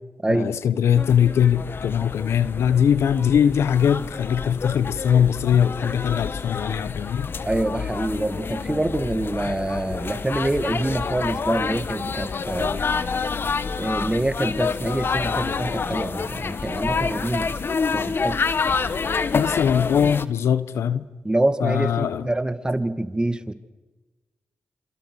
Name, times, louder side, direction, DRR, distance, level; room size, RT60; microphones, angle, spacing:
voice 1, 0.3-7.3 19.3-21.0 21.6-22.3, left 8 dB, 85° left, 1.1 m, -21 dB
sound 1, 1.0-20.3, left 5 dB, 60° left, 1.3 m, -28 dB
voice 2, 7.4-12.8 13.8-17.6 17.9-18.4 21.2-23.5, right 1 dB, 20° right, 2.1 m, -26 dB
27.5 x 27.5 x 6.4 m
supercardioid pair, 45°, 4 cm